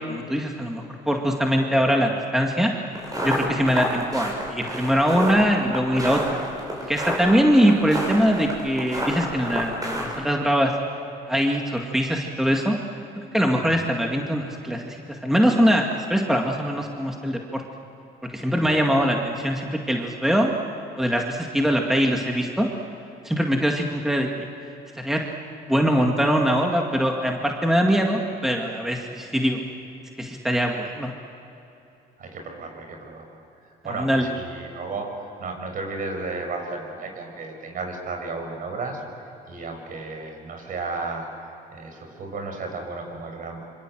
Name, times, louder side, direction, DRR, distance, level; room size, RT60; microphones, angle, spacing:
voice 1, 0.1-2.7 3.2-6.4 6.9-10.7 11.3-12.8 13.2-17.6 18.2-20.5 21.0-22.7 23.2-24.5 25.0-25.2 25.7-29.6 30.2-31.1 33.9-34.3, equal, ahead, 1 dB, 2.1 m, -22 dB
sound 1, 2.9-10.2, equal, 20° right, 7.2 m, -29 dB
voice 2, 18.6-19.1 25.2-25.3 32.2-39.0 39.5-41.3 41.7-43.6, right 3 dB, 55° right, 4 dB, 6.1 m, -34 dB
26.5 x 25.5 x 7.8 m, 2.9 s
cardioid pair, 110°, 17 cm